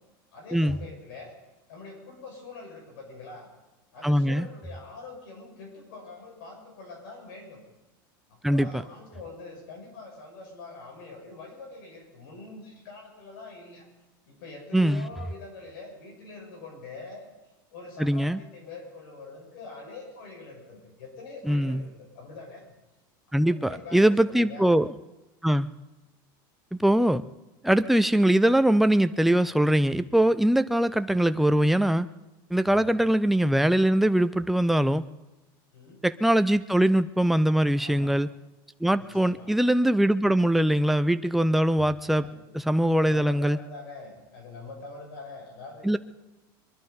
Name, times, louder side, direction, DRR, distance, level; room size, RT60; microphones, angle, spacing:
voice 1, 0.3-1.3 1.7-3.5 3.9-7.6 8.3-13.9 14.3-17.3 17.7-22.7 23.4-24.7 32.8-33.1 35.7-36.0 37.7-38.2 38.9-39.5 42.2-42.5 42.9-46.0, left 3 dB, 80° left, 1 dB, 6.8 m, -44 dB
voice 2, 4.0-4.5 8.4-8.7 14.7-15.1 18.0-18.4 21.4-21.8 23.3-24.9 25.4-25.7 26.7-27.2 27.6-32.1 32.5-35.1 36.0-38.3 38.8-42.3 42.5-43.6 45.8-46.0, right 1 dB, ahead, 11 dB, 0.5 m, -22 dB
23.5 x 11.5 x 5.3 m, 1.1 s
supercardioid pair, 130°, 11 cm